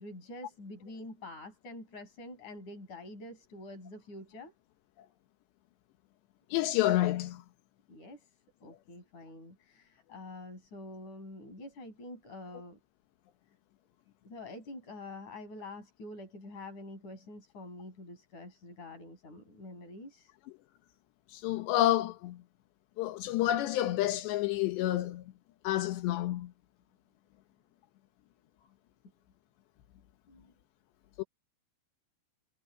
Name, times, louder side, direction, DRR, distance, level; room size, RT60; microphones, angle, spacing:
voice 1, 0.0-4.5 7.9-8.3 8.6-12.8 14.2-20.3 30.3-30.5, left 2 dB, 45° left, 8.1 m, -46 dB
voice 2, 6.5-7.4 21.3-22.4 23.0-25.2 25.6-26.5 31.2-31.3, left 14 dB, 85° left, 3.3 m, -29 dB
omnidirectional pair, 4.9 m